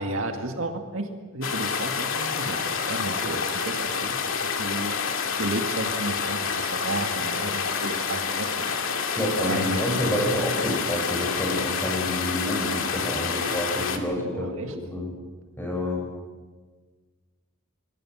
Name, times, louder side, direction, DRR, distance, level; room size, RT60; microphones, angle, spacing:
voice 1, 0.0-4.9 5.4-8.9 9.5-10.1 14.3-14.8, right 2 dB, 70° right, 4 dB, 2.1 m, -33 dB
sound 1, 1.4-14.0, left 6 dB, 70° left, 2.3 m, -28 dB
voice 2, 9.1-14.5 14.8-15.1 15.6-16.0, left 1 dB, 10° left, 0 dB, 6.8 m, -28 dB
26.5 x 21.0 x 6.3 m, 1.4 s
head